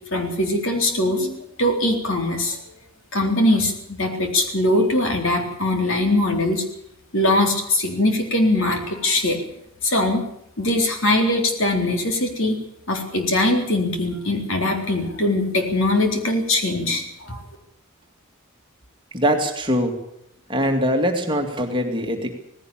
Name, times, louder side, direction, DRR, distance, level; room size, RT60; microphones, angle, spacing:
voice 1, 0.1-2.6 3.1-6.6 7.1-9.4 9.8-10.2 10.6-12.6 12.9-17.4, left 1 dB, 65° left, 4 dB, 3.9 m, -21 dB
voice 2, 19.1-20.0 20.5-22.3, equal, 20° right, 3 dB, 2.3 m, -22 dB
18.0 x 16.5 x 8.8 m, 0.74 s
head